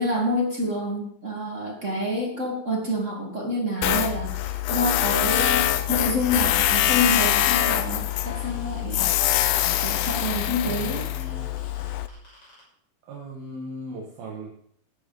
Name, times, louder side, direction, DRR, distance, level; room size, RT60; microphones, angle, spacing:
voice 1, 0.0-9.1 9.8-11.0, left 1 dB, 35° right, 0 dB, 1.2 m, -27 dB
Tools, 3.8-12.1, left 12 dB, 80° left, 2.4 m, -24 dB
sound 1, 6.2-9.5 9.8-12.6, left 2 dB, 35° left, 7.1 m, -52 dB
voice 2, 10.6-11.5 13.1-14.5, right 1 dB, 75° right, -2 dB, 3.7 m, -38 dB
15.5 x 11.5 x 3.9 m, 0.68 s
omnidirectional pair, 4.2 m